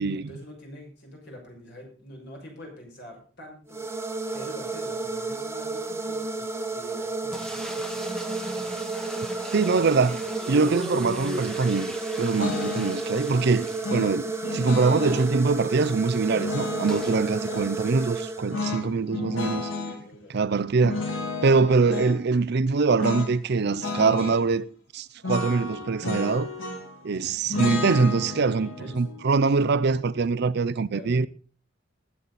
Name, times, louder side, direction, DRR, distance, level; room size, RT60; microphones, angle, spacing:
voice 1, 0.1-3.8 4.3-8.8 18.6-19.2 19.7-20.6 27.0-27.4 28.3-29.1 30.9-31.1, equal, 60° left, 6.5 m, -46 dB
sound 1, 3.7-18.9, right 3 dB, 15° right, 1.1 m, -32 dB
sound 2, 7.3-14.5 14.8-14.9 15.1-15.2 16.9-17.2, equal, 5° left, 1.3 m, -41 dB
voice 2, 9.5-19.7 20.3-21.1 21.4-24.7 24.9-26.5 27.0-28.7 28.9-31.3, right 4 dB, 55° right, 0.5 m, -23 dB
sound 3, 12.4-13.0 13.8-15.3 16.3-17.7 18.5-20.0 20.8-22.2 23.0-23.3 23.6-24.4 25.2-27.0 27.5-30.6, left 3 dB, 90° left, 3.0 m, -32 dB
19.5 x 8.5 x 4.1 m
head